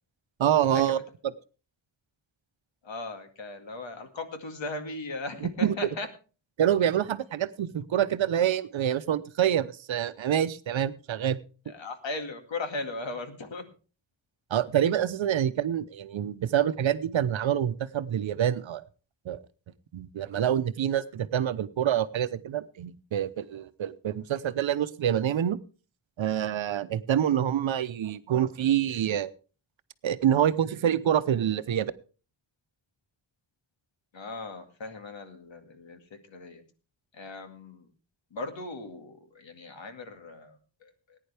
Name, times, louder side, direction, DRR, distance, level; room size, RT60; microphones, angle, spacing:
voice 1, 0.4-1.0 5.4-5.9 6.6-11.4 14.5-18.8 19.3-19.4 19.9-25.6 26.2-29.3 30.0-31.9, right 10 dB, 85° right, 13 dB, 0.8 m, -26 dB
voice 2, 2.8-6.1 11.7-13.6 34.1-36.0 36.3-36.6 37.1-37.9 38.3-41.2, left 2 dB, 80° left, 6 dB, 2.2 m, -38 dB
19.0 x 10.0 x 3.4 m, 0.36 s
wide cardioid pair, 160°, 45 cm